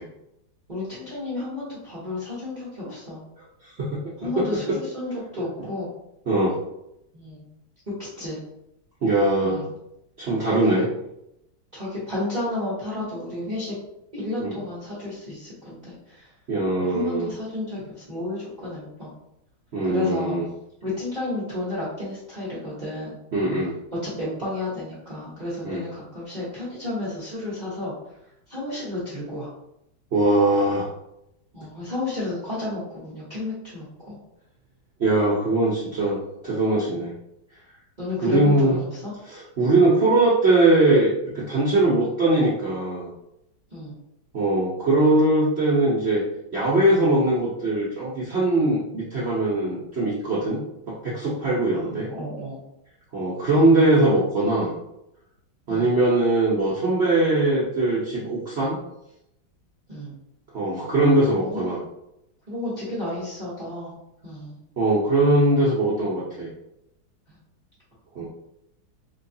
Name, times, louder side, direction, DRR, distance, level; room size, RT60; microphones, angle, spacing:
voice 1, 0.7-3.2 4.2-5.9 7.1-7.5 8.2-8.4 9.4-9.7 10.4-10.8 11.7-13.7 14.1-16.3 16.8-19.1 19.8-20.4 20.8-23.2 23.9-27.9 28.5-29.5 31.5-34.2 38.0-39.1 43.7-43.9 51.7-52.6 53.5-53.7 55.7-56.0 59.9-60.1 61.4-61.7 62.5-63.9 64.2-64.6 67.3-67.4, left 2 dB, 30° right, -9 dB, 0.8 m, -31 dB
voice 2, 6.3-6.6 9.0-9.6 10.2-10.9 14.4-14.6 16.5-17.3 19.7-20.4 23.3-23.7 25.6-25.8 30.1-30.9 35.0-37.1 38.2-38.8 39.3-41.1 41.3-43.1 44.3-46.2 46.5-50.6 50.9-52.1 53.1-54.7 55.7-58.8 60.5-61.8 64.8-66.5 68.1-68.3, right 2 dB, 75° right, -7 dB, 0.5 m, -21 dB
4.4 x 2.3 x 2.6 m, 0.81 s
omnidirectional pair, 2.2 m